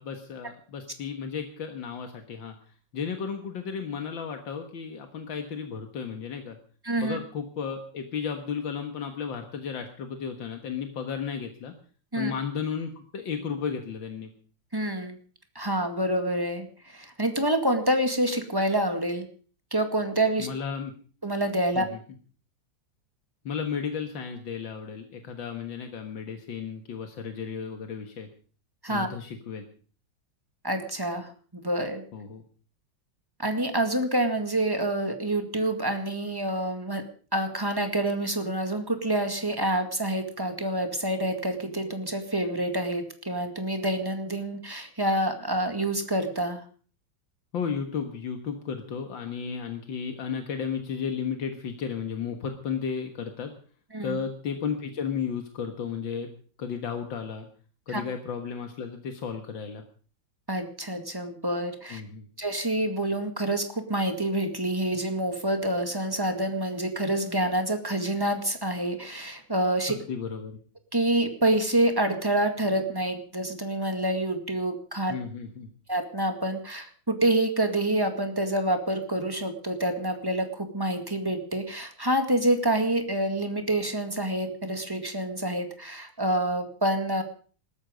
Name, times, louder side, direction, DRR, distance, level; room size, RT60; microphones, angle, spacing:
voice 1, 0.0-2.5 2.9-6.6 7.0-11.7 12.1-14.3 20.4-20.9 21.8-22.0 23.5-28.3 28.9-29.6 32.1-32.4 47.5-53.5 54.0-56.3 56.6-57.5 57.9-59.8 61.9-62.3 69.9-70.6 75.1-75.7, left 6 dB, 85° left, 5 dB, 2.3 m, -33 dB
voice 2, 6.8-7.2 12.1-12.3 14.7-15.2 15.6-19.3 19.7-20.5 21.2-21.9 28.8-29.1 30.6-32.0 33.4-37.0 37.3-46.6 53.9-54.2 57.9-58.0 60.5-62.0 62.4-70.0 70.9-75.2 75.9-87.2, right 1 dB, 10° right, 6 dB, 2.0 m, -27 dB
20.0 x 13.0 x 5.2 m, 0.42 s
omnidirectional pair, 2.0 m